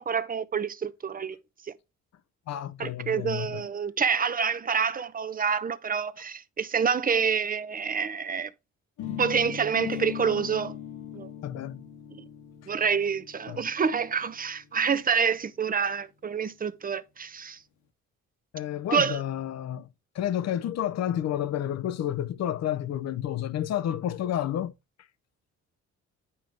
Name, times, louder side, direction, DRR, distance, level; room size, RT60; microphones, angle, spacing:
voice 1, 0.0-1.4 1.7-1.8 2.8-8.5 9.2-10.8 11.1-11.3 12.7-17.6 18.9-19.2, right 6 dB, 30° right, 0.7 m, -27 dB
voice 2, 2.5-3.6 11.4-11.9 13.5-13.6 18.5-19.9 20.1-24.7, left 11 dB, 60° left, 0.7 m, -30 dB
sound 1, 9.0-14.9, left 10 dB, 85° left, 1.6 m, -39 dB
9.1 x 5.5 x 3.4 m
cardioid pair, 90°, 30 cm